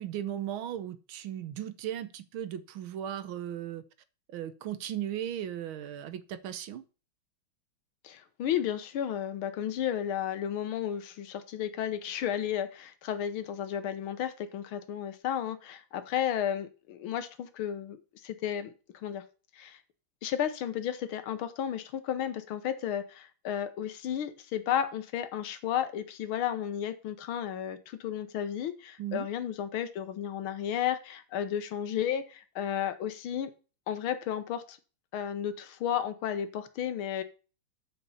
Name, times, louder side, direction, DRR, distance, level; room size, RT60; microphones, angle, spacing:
voice 1, 0.0-3.8 4.3-6.8 29.0-29.3, right 11 dB, 80° right, 1.6 m, -37 dB
voice 2, 8.0-18.0 18.2-18.7 19.0-19.2 19.6-19.8 20.2-33.5 33.9-34.8 35.1-37.2, left 10 dB, 80° left, 1.8 m, -33 dB
7.9 x 5.5 x 7.1 m
omnidirectional pair, 2.3 m